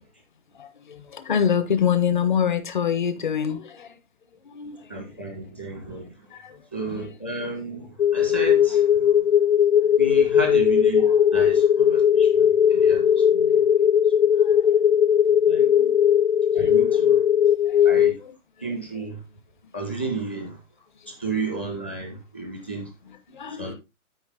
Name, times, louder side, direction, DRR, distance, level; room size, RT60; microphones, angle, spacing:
voice 1, 0.5-4.0 4.4-5.0 6.3-7.1 9.0-9.3 9.8-9.9 11.0-11.4 12.5-12.6 14.3-14.8 15.6-16.0 16.5-16.9 17.3-18.7 19.6-19.7 20.9-21.1 23.0-23.7, left 8 dB, 35° left, 1.1 m, -28 dB
voice 2, 4.9-6.3 6.7-9.2 10.0-13.7 14.2-14.3 15.3-15.7 16.5-17.2 17.8-18.2 18.6-19.2 19.7-20.6 21.1-22.9 23.5-23.7, right 3 dB, 10° left, 0.6 m, -33 dB
sound 1, 8.0-18.1, left 9 dB, 55° left, 0.5 m, -18 dB
12.5 x 5.0 x 3.6 m
hypercardioid pair, 170°, 44 cm